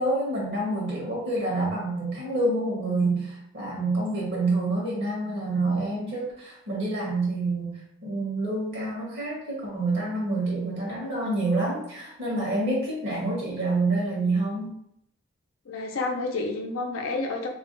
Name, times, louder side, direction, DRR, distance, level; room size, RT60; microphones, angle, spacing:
voice 1, 0.0-7.7 8.0-14.7, right 2 dB, 60° right, -4 dB, 0.9 m, -27 dB
voice 2, 15.7-17.5, left 3 dB, 90° left, 1 dB, 0.5 m, -29 dB
2.4 x 2.2 x 3.7 m, 0.74 s
head